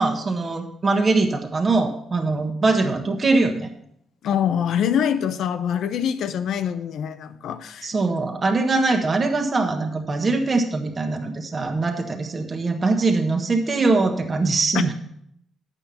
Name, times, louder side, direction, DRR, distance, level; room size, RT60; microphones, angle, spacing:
voice 1, 0.0-3.7 7.8-14.9, right 3 dB, 35° right, 3 dB, 1.3 m, -22 dB
voice 2, 4.2-7.9 14.7-14.9, left 8 dB, 75° left, 11 dB, 0.7 m, -24 dB
8.2 x 5.9 x 6.9 m, 0.73 s
cardioid pair, 90°, 0 cm